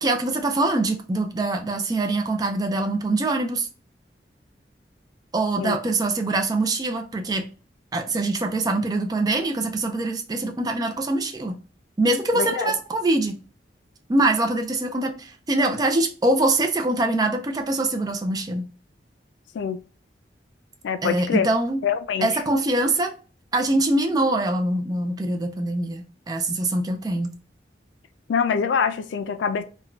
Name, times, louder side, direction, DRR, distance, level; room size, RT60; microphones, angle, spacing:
voice 1, 0.0-3.7 5.3-7.5 7.9-11.6 12.0-13.4 14.1-18.6 21.0-21.8 22.2-23.1 23.5-27.3, right 2 dB, 20° right, 0.4 m, -23 dB
voice 2, 12.3-12.7 19.5-19.8 20.8-21.5 21.8-22.4 28.3-29.6, left 6 dB, 85° left, 0.3 m, -24 dB
3.6 x 2.2 x 2.2 m
head